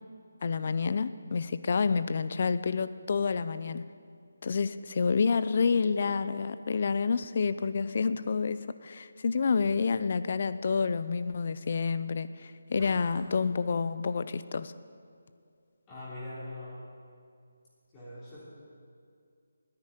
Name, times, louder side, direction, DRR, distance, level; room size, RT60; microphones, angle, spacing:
voice 1, 0.4-3.8 4.4-14.7, left 5 dB, 45° left, 13 dB, 0.5 m, -29 dB
sound 1, 12.7-13.6, right 1 dB, 15° right, 3.7 m, -47 dB
voice 2, 15.9-16.9 17.9-18.4, left 1 dB, 15° left, -9 dB, 3.3 m, -42 dB
10.0 x 9.7 x 9.1 m, 2.3 s
figure-of-eight pair, 170°, 0 cm